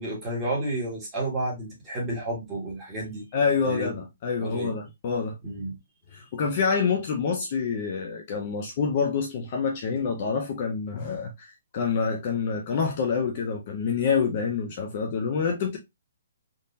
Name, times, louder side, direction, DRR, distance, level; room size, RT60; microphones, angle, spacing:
voice 1, 0.0-3.2 3.6-3.9 4.4-4.7 5.4-5.7, right 1 dB, 10° right, 1.4 m, -31 dB
voice 2, 3.3-5.4 6.1-15.8, left 5 dB, 30° left, 0.5 m, -27 dB
3.7 x 2.7 x 2.6 m
hypercardioid pair, 180°, 0 cm